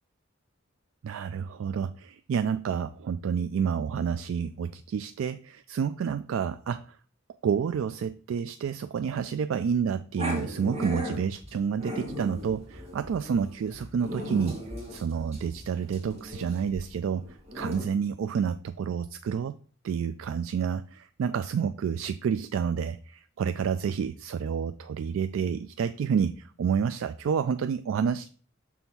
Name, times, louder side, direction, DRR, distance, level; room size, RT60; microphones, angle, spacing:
voice 1, 1.0-7.0 7.4-14.6 14.9-19.5 19.8-28.3, right 7 dB, 80° right, 10 dB, 0.3 m, -29 dB
Growling, 10.2-17.8, left 1 dB, 35° right, 1.9 m, -37 dB
6.2 x 3.4 x 5.4 m, 0.42 s
head